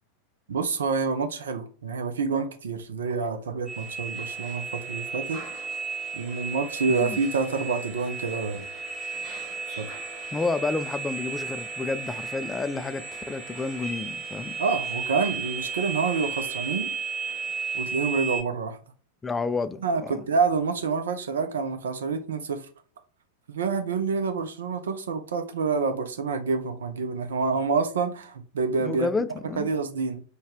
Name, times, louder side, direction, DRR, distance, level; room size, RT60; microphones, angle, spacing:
voice 1, 0.5-5.4 6.1-8.7 9.8-9.9 14.6-16.9 17.7-18.8 19.8-22.7 23.5-29.1 29.6-30.2, right 4 dB, 65° right, 0.6 m, -27 dB
sound 1, 3.7-18.4, right 5 dB, 25° right, 1.6 m, -34 dB
voice 2, 6.9-7.2 10.3-14.5 19.2-20.1 28.8-29.7, left 4 dB, 15° left, 0.3 m, -30 dB
4.4 x 2.3 x 3.3 m
figure-of-eight pair, 90°, 0 cm